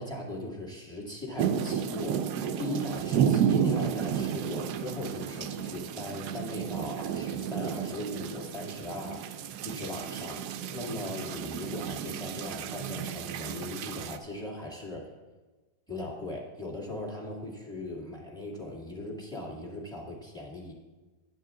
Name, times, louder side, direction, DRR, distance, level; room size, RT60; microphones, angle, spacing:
voice 1, 0.0-9.2 9.6-15.1 15.9-20.7, left 1 dB, ahead, -2 dB, 1.7 m, -39 dB
sound 1, 1.4-14.2, right 8 dB, 70° right, 1.0 m, -32 dB
11.0 x 9.0 x 3.7 m, 1.2 s
omnidirectional pair, 2.0 m